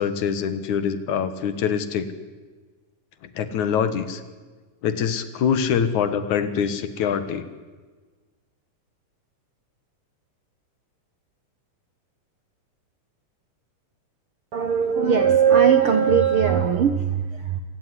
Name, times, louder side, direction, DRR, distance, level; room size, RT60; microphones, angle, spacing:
voice 1, 0.0-2.1 3.4-4.2 4.8-7.5, left 7 dB, 65° left, 12 dB, 2.7 m, -24 dB
voice 2, 14.5-17.6, right 7 dB, 60° right, 9 dB, 1.4 m, -19 dB
27.0 x 17.5 x 9.9 m, 1.4 s
omnidirectional pair, 3.8 m